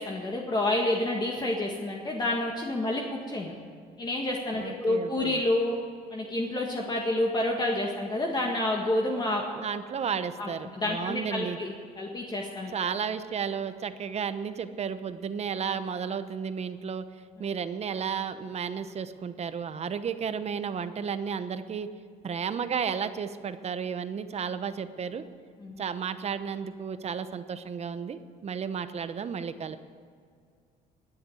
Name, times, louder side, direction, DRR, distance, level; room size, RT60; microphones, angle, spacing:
voice 1, 0.0-3.5 4.0-5.8 6.1-9.4 10.4-12.7 25.6-25.8, left 1 dB, 25° left, 0 dB, 1.7 m, -29 dB
voice 2, 4.6-5.4 9.6-11.6 12.7-17.0 17.4-21.9 22.2-25.2 25.8-29.8, right 6 dB, 40° right, 11 dB, 0.9 m, -33 dB
21.0 x 7.8 x 7.8 m, 2.2 s
cardioid pair, 110°, 17 cm